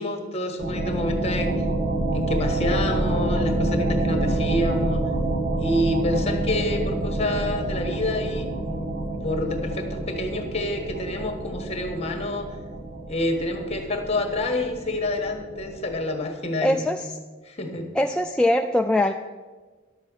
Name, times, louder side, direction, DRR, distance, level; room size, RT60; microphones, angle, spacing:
voice 1, 0.0-1.6 2.1-5.1 5.6-9.0 9.2-12.6 13.1-16.9 17.4-17.9, left 1 dB, 35° left, 5 dB, 1.4 m, -28 dB
sound 1, 0.6-16.0, right 2 dB, 60° right, 1.8 m, -27 dB
voice 2, 16.6-17.1 17.9-19.1, left 1 dB, 5° left, 3 dB, 0.3 m, -22 dB
11.0 x 7.5 x 6.3 m, 1.3 s
head